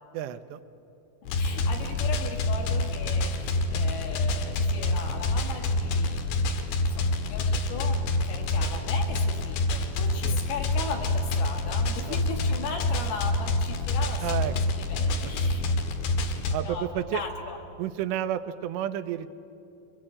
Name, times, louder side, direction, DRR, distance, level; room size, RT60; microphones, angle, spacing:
voice 1, 0.1-0.6 10.2-10.4 12.1-12.2 14.2-14.5 16.5-17.2 17.8-19.3, right 11 dB, 85° right, 10 dB, 2.9 m, -31 dB
voice 2, 1.2-6.3 6.9-8.0 8.2-15.7 16.3-17.6, left 5 dB, 65° left, 1 dB, 4.0 m, -38 dB
sound 1, 1.3-16.6, left 2 dB, 85° left, 3.7 m, -27 dB
23.5 x 20.0 x 8.8 m, 2.8 s
omnidirectional pair, 4.9 m